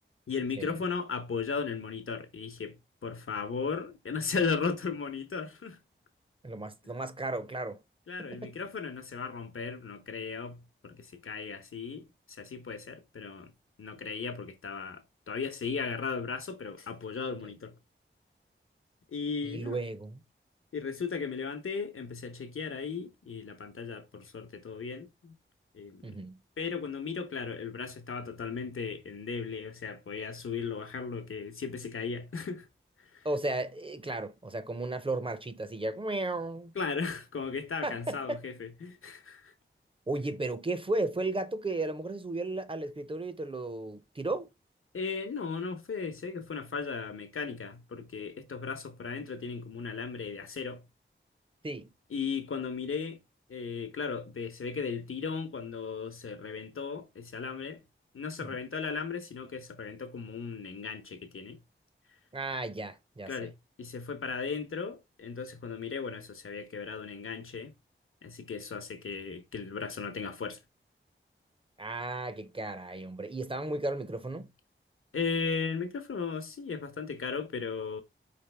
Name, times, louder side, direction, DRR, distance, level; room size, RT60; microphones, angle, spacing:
voice 1, 0.3-5.8 6.8-6.9 8.1-13.5 13.8-17.8 19.1-19.8 20.7-25.4 25.7-26.2 26.6-32.7 33.0-33.3 36.7-39.5 44.9-50.8 52.1-53.2 53.5-57.8 58.1-61.6 63.3-67.7 68.2-70.6 75.1-78.0, left 5 dB, 85° left, 0.8 m, -36 dB
voice 2, 6.4-7.8 8.2-8.5 19.4-20.2 26.0-26.4 33.2-36.7 37.8-38.4 40.1-44.5 51.6-51.9 58.4-58.6 62.3-63.5 71.8-74.5, right 2 dB, 25° right, 0.5 m, -34 dB
5.0 x 2.9 x 3.3 m
wide cardioid pair, 70°, 21 cm